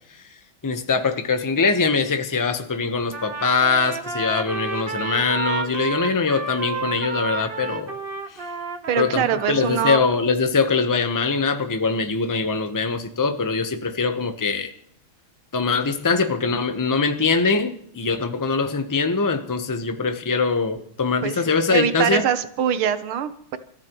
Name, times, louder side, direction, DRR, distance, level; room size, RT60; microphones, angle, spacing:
voice 1, 0.6-8.0 8.3-8.4 9.0-14.7 15.5-22.2, left 4 dB, 25° left, 7 dB, 0.4 m, -22 dB
Trumpet, 3.1-10.0, right 4 dB, 35° right, 0.9 m, -31 dB
voice 2, 8.9-10.0 21.2-23.6, right 8 dB, 80° right, 11 dB, 1.7 m, -23 dB
29.5 x 14.5 x 3.1 m, 0.67 s
omnidirectional pair, 2.3 m